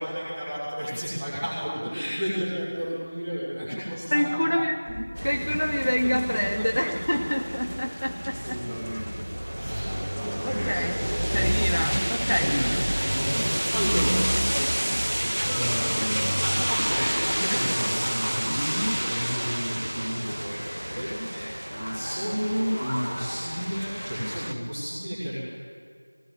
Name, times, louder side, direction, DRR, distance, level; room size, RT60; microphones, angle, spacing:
voice 1, 0.0-4.3 4.9-5.0 6.0-6.9 7.7-7.8 8.3-9.3 9.5-10.8 12.3-12.7 13.0-13.4 13.7-14.3 15.4-25.4, equal, 5° right, -16 dB, 2.4 m, -32 dB
voice 2, 4.1-4.8 5.2-8.6 10.4-11.0 11.3-12.5, equal, 85° left, 1 dB, 2.0 m, -26 dB
sound 1, 5.2-24.5, equal, 85° right, 1.6 m, -29 dB
sound 2, 10.6-23.5, equal, 15° left, 1.9 m, -40 dB
19.0 x 19.0 x 7.9 m, 2.1 s
figure-of-eight pair, 180°, 0 cm